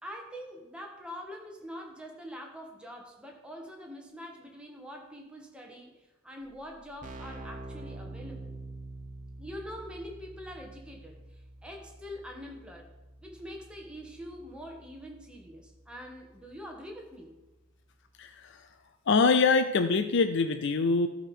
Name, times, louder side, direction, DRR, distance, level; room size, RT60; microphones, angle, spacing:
voice 1, 0.0-5.9 6.2-8.5 9.4-11.2 11.6-12.9 13.2-17.3, equal, 5° right, 0 dB, 1.6 m, -44 dB
Keyboard (musical), 6.4-6.5 6.7-17.3, right 2 dB, 40° right, 0.9 m, -47 dB
voice 2, 18.2-18.7 19.1-21.1, left 4 dB, 60° left, 8 dB, 0.5 m, -24 dB
13.0 x 5.2 x 5.5 m, 1.1 s
head